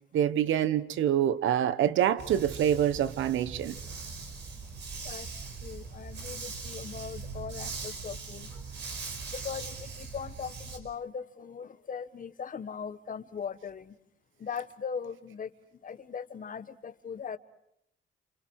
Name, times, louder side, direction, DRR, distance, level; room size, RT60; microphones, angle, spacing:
voice 1, 0.1-3.8, right 10 dB, 80° right, 1.1 m, -26 dB
Dog, 2.2-10.8, right 4 dB, 60° right, 5.3 m, -40 dB
voice 2, 5.0-8.5 9.3-13.9 14.4-15.5 15.8-17.4, left 6 dB, 45° left, 1.4 m, -39 dB
29.0 x 28.0 x 4.8 m
cardioid pair, 90°, 20 cm